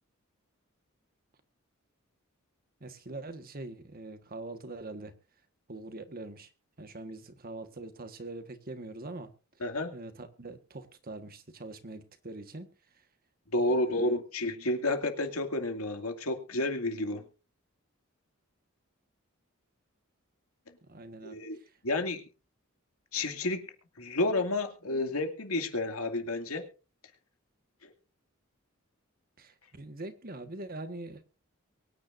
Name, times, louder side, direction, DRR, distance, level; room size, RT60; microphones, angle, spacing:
voice 1, 2.8-5.1 5.7-6.5 6.8-9.3 9.9-12.7 13.6-14.2 20.8-21.7 29.4-31.2, right 2 dB, 45° right, 1.5 m, -43 dB
voice 2, 9.6-9.9 13.5-17.2 21.2-21.6 21.8-22.2 23.1-23.7 24.0-26.6, left 2 dB, 85° left, 2.4 m, -30 dB
23.5 x 9.8 x 2.6 m
head